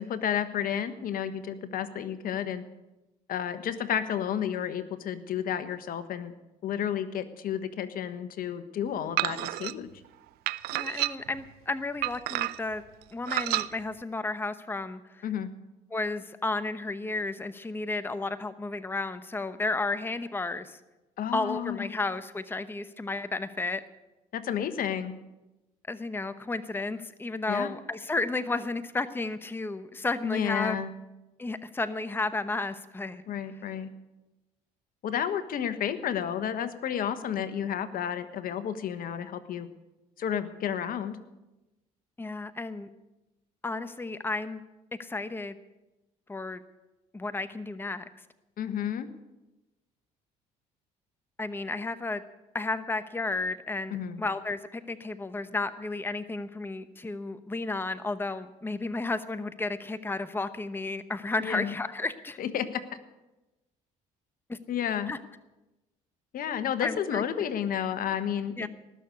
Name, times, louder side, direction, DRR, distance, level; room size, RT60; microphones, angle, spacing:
voice 1, 0.0-2.6 3.3-6.3 6.6-9.9 15.2-15.5 21.2-21.9 24.3-25.2 27.5-27.7 30.2-30.9 33.3-33.9 35.0-39.7 40.2-41.2 48.6-49.1 53.9-54.2 61.4-61.7 62.4-62.8 64.7-65.1 66.3-68.7, left 9 dB, 60° left, 11 dB, 1.3 m, -31 dB
sound 1, 9.2-9.7 10.5-11.4 12.0-12.7 13.3-13.7, right 18 dB, 75° right, 0.5 m, -30 dB
voice 2, 10.7-12.8 13.1-15.3 15.9-20.8 21.3-23.8 25.9-30.8 31.4-33.2 42.2-42.9 43.6-44.6 45.0-45.5 46.3-46.6 47.1-48.0 51.4-52.2 52.5-62.4 64.5-64.6 65.1-65.2 66.8-67.2 68.6-68.7, left 3 dB, 15° left, 11 dB, 0.9 m, -32 dB
19.0 x 6.7 x 9.6 m, 1.0 s
supercardioid pair, 70°, 17 cm